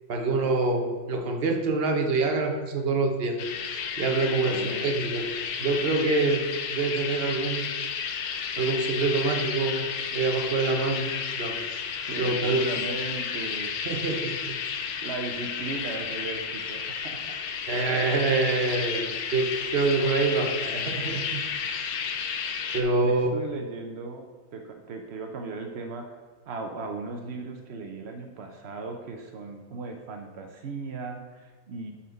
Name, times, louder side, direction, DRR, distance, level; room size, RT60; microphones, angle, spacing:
voice 1, 0.1-3.4 4.0-5.3 5.6-6.5 6.7-7.7 8.6-9.9 10.1-11.6 12.2-12.6 13.9-14.6 17.7-21.9 22.7-23.3, right 3 dB, 50° right, 4 dB, 0.7 m, -26 dB
sound 1, 3.4-22.8, left 7 dB, 70° left, 1.4 m, -32 dB
voice 2, 4.4-4.9 12.1-13.7 15.0-17.2 23.0-26.0 26.5-31.9, right 3 dB, 85° right, 3 dB, 0.5 m, -37 dB
7.6 x 4.2 x 6.4 m, 1.5 s
omnidirectional pair, 2.2 m